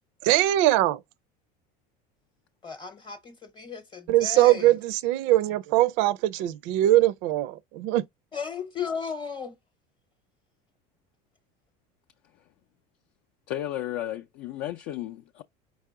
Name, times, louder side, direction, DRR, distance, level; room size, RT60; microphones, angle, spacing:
voice 1, 0.2-1.0 4.1-8.0, right 15 dB, 70° right, 0.5 m, -22 dB
voice 2, 2.6-4.7 8.3-9.5, left 6 dB, 20° left, 0.8 m, -35 dB
voice 3, 13.5-15.4, left 13 dB, 60° left, 0.5 m, -33 dB
4.8 x 3.1 x 3.6 m
supercardioid pair, 125°, 21 cm